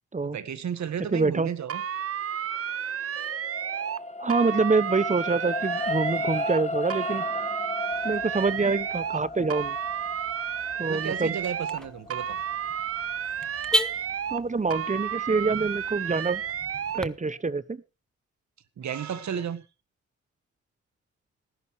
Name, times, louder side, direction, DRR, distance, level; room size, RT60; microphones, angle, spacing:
voice 1, 0.2-1.8 7.8-8.1 10.9-12.4 18.8-19.7, right 8 dB, 65° right, 13 dB, 1.8 m, -33 dB
voice 2, 1.1-1.5 4.2-7.2 8.0-9.8 10.8-11.4 14.3-16.4 16.9-17.8, right 4 dB, 25° right, 19 dB, 1.0 m, -26 dB
sound 1, 1.7-4.0 4.3-6.6 6.9-9.2 9.5-11.8 12.1-14.4 14.7-17.0, right 9 dB, 50° right, 0.8 m, -32 dB
sound 2, 2.7-15.2 15.8-15.9, left 2 dB, 20° left, 1.7 m, -35 dB
Car / Alarm, 7.9-17.1, left 1 dB, ahead, 1.2 m, -37 dB
18.5 x 11.0 x 3.2 m, 0.30 s
supercardioid pair, 55°, 30 cm